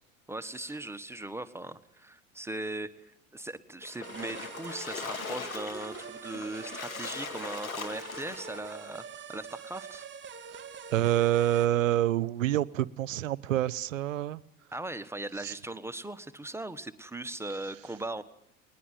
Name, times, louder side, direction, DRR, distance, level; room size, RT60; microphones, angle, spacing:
voice 1, 0.3-10.0 14.7-18.2, right 2 dB, 5° right, 12 dB, 1.4 m, -39 dB
Splash splatter, 3.8-8.7, left 5 dB, 85° left, 2.2 m, -40 dB
sound 1, 4.0-11.7, right 6 dB, 25° right, 2.9 m, -44 dB
voice 2, 10.9-14.4 15.4-15.5, right 13 dB, 70° right, 21 dB, 0.9 m, -27 dB
21.0 x 20.5 x 9.5 m, 0.76 s
figure-of-eight pair, 80°, 41 cm